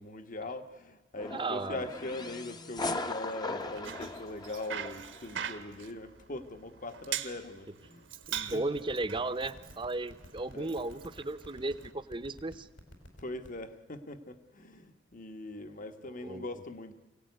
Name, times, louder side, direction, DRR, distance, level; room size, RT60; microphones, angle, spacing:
voice 1, 0.0-8.1 8.5-8.6 10.5-10.8 13.2-16.9, left 2 dB, 45° left, 9 dB, 1.3 m, -41 dB
sound 1, 1.2-5.2, left 2 dB, 20° left, 0.9 m, -39 dB
voice 2, 1.3-1.8 8.3-12.7 16.2-16.4, right 2 dB, 25° right, 12 dB, 0.9 m, -35 dB
Bicycle, 3.6-11.9, right 9 dB, 75° right, 1.5 m, -43 dB
sound 2, 8.2-13.6, equal, 75° left, 5.0 m, -49 dB
25.0 x 17.0 x 9.5 m, 1.2 s
head